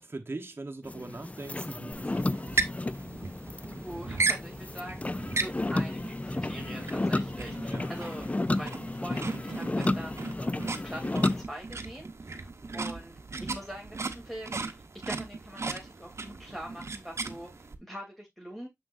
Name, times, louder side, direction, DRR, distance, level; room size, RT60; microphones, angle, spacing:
voice 1, 0.0-2.7 7.7-7.9 12.6-12.9, right 2 dB, 50° right, 1.0 m, -41 dB
sound 1, 0.8-11.4, left 2 dB, 30° left, 0.4 m, -32 dB
sound 2, 1.9-17.7, right 3 dB, 70° right, 0.8 m, -36 dB
voice 2, 3.8-8.3 8.5-13.1 13.4-18.7, equal, 5° left, 2.8 m, -43 dB
6.6 x 5.9 x 2.5 m
cardioid pair, 45°, 5 cm